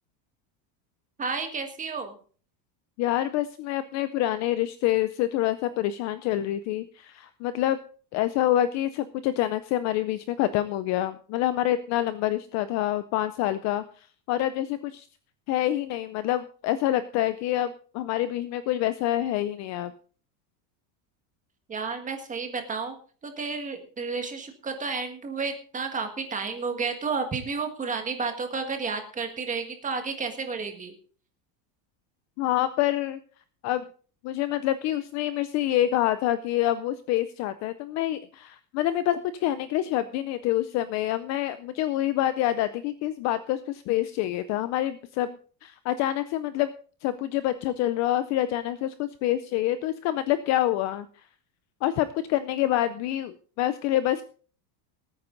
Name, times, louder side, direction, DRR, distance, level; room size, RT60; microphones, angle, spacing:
voice 1, 1.2-2.1 21.7-22.9 23.2-30.9, right 4 dB, 15° right, 6 dB, 1.6 m, -31 dB
voice 2, 3.0-7.8 8.1-15.1 15.5-19.9 32.4-33.2 33.6-33.8 34.2-46.7 47.0-51.2 51.8-54.2, left 13 dB, 35° left, 13 dB, 0.5 m, -27 dB
19.0 x 9.1 x 3.8 m, 0.42 s
cardioid pair, 165°, 49 cm